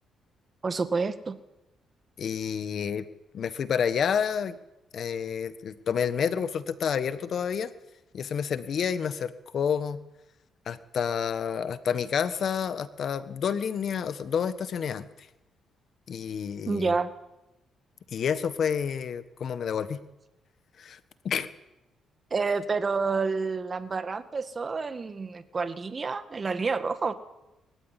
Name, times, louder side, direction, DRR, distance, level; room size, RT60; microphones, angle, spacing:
voice 1, 0.6-1.4 16.7-17.1 22.3-27.1, right 4 dB, 35° right, 10 dB, 1.8 m, -29 dB
voice 2, 2.2-3.0 3.3-4.6 4.9-7.7 8.1-10.0 10.7-15.1 16.1-17.0 18.1-20.0 20.8-21.0 21.2-21.5, left 7 dB, 60° left, 12 dB, 1.4 m, -29 dB
23.0 x 15.5 x 10.0 m, 0.94 s
cardioid pair, 90°, 0 cm